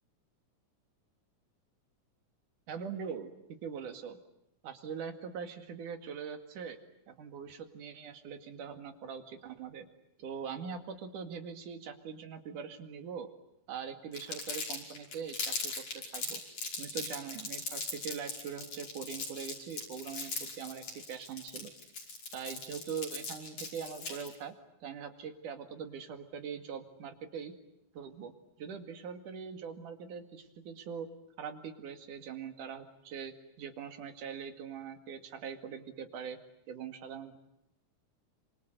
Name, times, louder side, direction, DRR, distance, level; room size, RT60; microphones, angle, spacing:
voice 1, 2.7-3.3 3.6-4.2 4.6-6.8 7.1-9.9 10.2-13.3 13.7-16.4 16.8-21.7 22.3-24.6 24.8-27.5 27.9-28.3 28.6-31.1 31.4-36.4 36.7-37.4, right 7 dB, 75° right, 7 dB, 3.7 m, -42 dB
Crumpling crinkling, 14.1-24.3, left 4 dB, 75° left, 6.8 m, -39 dB
28.5 x 26.0 x 8.1 m, 0.83 s
omnidirectional pair, 3.6 m